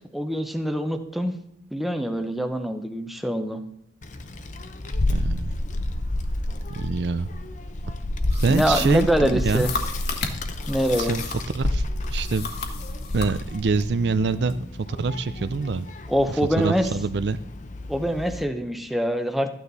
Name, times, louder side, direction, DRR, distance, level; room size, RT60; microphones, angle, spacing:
voice 1, 0.0-1.3 1.7-3.6 8.5-9.7 10.7-11.2 16.1-16.9 17.9-19.5, equal, ahead, 7 dB, 0.7 m, -24 dB
Child speech kid speaking, 4.0-18.4, left 1 dB, 40° left, 0.8 m, -30 dB
voice 2, 5.1-5.6 6.7-7.3 7.9-8.0 8.3-9.7 11.0-11.2 11.5-12.5 13.1-15.9 16.3-17.4, right 4 dB, 65° right, 14 dB, 0.4 m, -26 dB
sound 1, 8.3-11.6 12.0-13.3, left 4 dB, 55° left, 1.3 m, -34 dB
13.0 x 9.3 x 4.1 m, 0.80 s
head